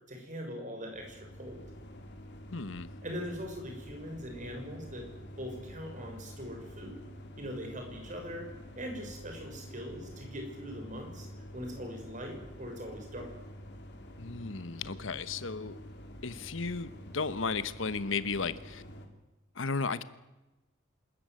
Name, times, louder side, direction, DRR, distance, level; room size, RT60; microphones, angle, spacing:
voice 1, 0.1-1.6 3.0-5.1 5.4-7.0 7.4-8.5 8.8-11.3 11.5-13.3, equal, 40° right, 3 dB, 6.2 m, -41 dB
sound 1, 0.9-19.1, equal, 60° left, 3.4 m, -48 dB
voice 2, 2.5-2.9 14.2-15.8 16.2-18.8 19.6-20.0, left 4 dB, 75° left, 14 dB, 1.1 m, -34 dB
26.5 x 14.0 x 9.5 m, 1.0 s
head